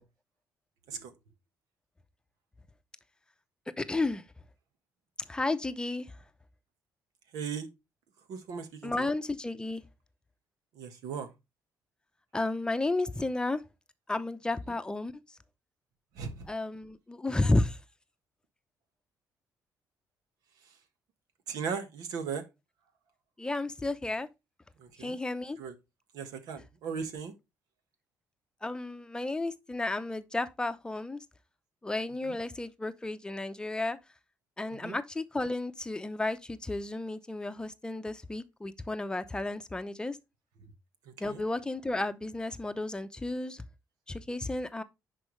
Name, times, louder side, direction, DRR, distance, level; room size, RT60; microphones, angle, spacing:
voice 1, 3.8-4.2 5.3-6.1 8.8-9.8 12.3-13.6 14.1-15.1 16.5-17.8 23.4-24.3 25.0-25.6 28.6-31.2 31.8-34.0 34.6-40.2 41.2-43.6 44.1-44.8, left 2 dB, 15° left, 0.7 m, -32 dB
voice 2, 7.3-7.7 8.3-9.1 10.8-11.3 16.1-16.5 21.5-22.4 24.8-25.1 25.6-25.7 26.1-27.3 34.8-34.9 41.1-41.4, right 6 dB, 85° right, 1.5 m, -37 dB
10.5 x 4.6 x 3.2 m
cardioid pair, 105°, 6 cm